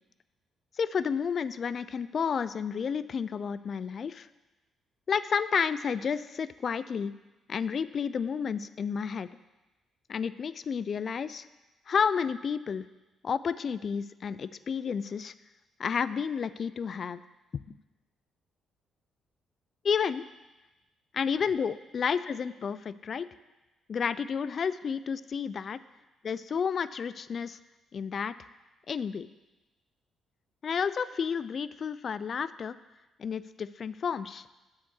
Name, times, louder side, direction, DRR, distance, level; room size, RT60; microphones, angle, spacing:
voice 1, 0.8-4.3 5.1-7.1 7.5-9.3 10.1-11.5 11.9-12.8 13.2-15.3 15.8-17.2 17.5-17.8 19.8-20.3 21.1-23.3 23.9-25.8 26.2-27.6 27.9-28.3 28.9-29.3 30.6-32.8 33.2-34.5, left 6 dB, 50° left, 15 dB, 0.3 m, -31 dB
7.3 x 5.3 x 7.0 m, 1.1 s
cardioid pair, 90°, 0 cm